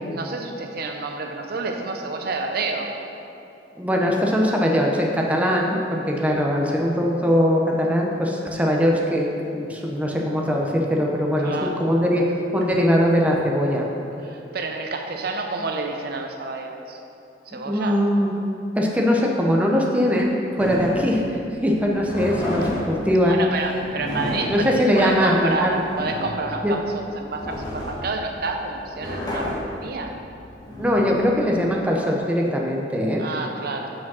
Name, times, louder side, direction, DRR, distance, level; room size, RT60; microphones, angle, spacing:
voice 1, 0.1-3.0 11.4-11.8 14.2-17.0 17.5-18.0 23.3-26.8 27.2-30.1 33.2-33.9, right 3 dB, 55° right, 3 dB, 0.5 m, -29 dB
voice 2, 3.8-12.3 12.5-13.8 17.7-18.3 18.8-23.4 24.5-25.8 26.6-26.8 30.8-33.2, equal, 10° right, -1 dB, 0.6 m, -21 dB
sound 1, 20.6-31.9, left 1 dB, 20° left, 1.3 m, -32 dB
5.9 x 5.0 x 6.2 m, 2.7 s
head